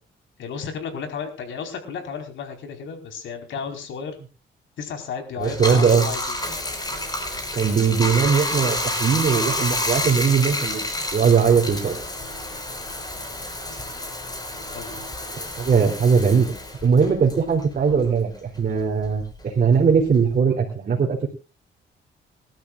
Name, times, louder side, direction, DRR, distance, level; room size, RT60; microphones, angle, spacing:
voice 1, 0.4-4.2 4.8-6.4 14.7-15.0, left 6 dB, 75° left, 4 dB, 4.7 m, -33 dB
Bathtub (filling or washing), 5.4-18.2 18.6-20.4, left 1 dB, 20° left, 5.1 m, -29 dB
voice 2, 5.4-6.1 7.5-12.0 15.3-16.6 16.8-21.3, right 6 dB, 45° right, 0 dB, 3.4 m, -20 dB
27.0 x 12.5 x 2.5 m, 0.32 s
cardioid pair, 90°, 20 cm